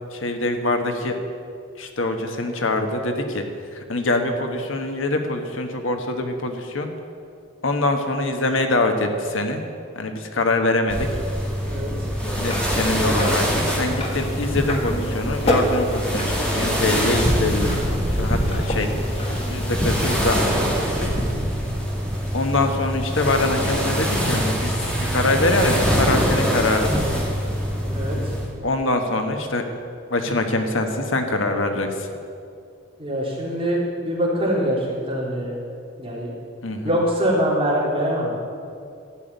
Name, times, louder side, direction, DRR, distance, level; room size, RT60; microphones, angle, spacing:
voice 1, 0.1-1.2 1.8-3.4 3.9-6.9 7.6-9.6 9.9-11.1 12.4-19.0 19.3-21.1 22.3-24.8 25.1-26.9 28.6-29.6 30.1-31.9 36.6-36.9, left 2 dB, 85° left, 5 dB, 1.3 m, -24 dB
sound 1, 10.9-28.5, equal, 5° left, 2.2 m, -24 dB
voice 2, 11.6-12.1 27.9-28.3 33.0-35.6 36.0-36.3 36.8-38.4, equal, 30° right, -5 dB, 3.5 m, -24 dB
sound 2, 12.2-20.4, left 1 dB, 30° left, 1.4 m, -30 dB
13.0 x 7.1 x 9.2 m, 2.4 s
head